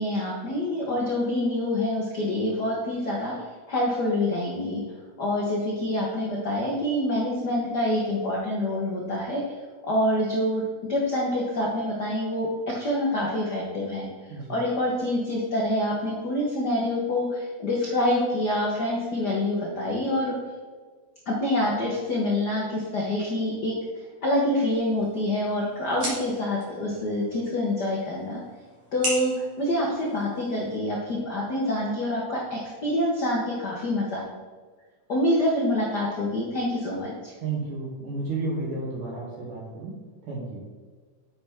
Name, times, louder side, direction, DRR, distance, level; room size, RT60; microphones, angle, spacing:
voice 1, 0.0-3.3 3.7-4.8 5.2-9.4 9.8-10.6 10.9-12.5 12.7-14.1 14.5-20.3 21.3-28.4 28.9-34.2 35.1-37.3, left 1 dB, 75° left, -3 dB, 0.9 m, -26 dB
sound 1, 24.7-30.7, right 1 dB, 55° right, 3.4 m, -38 dB
voice 2, 37.4-39.9 40.3-40.6, right 3 dB, 80° right, -6 dB, 4.0 m, -32 dB
8.6 x 5.6 x 3.6 m, 1.5 s
omnidirectional pair, 3.5 m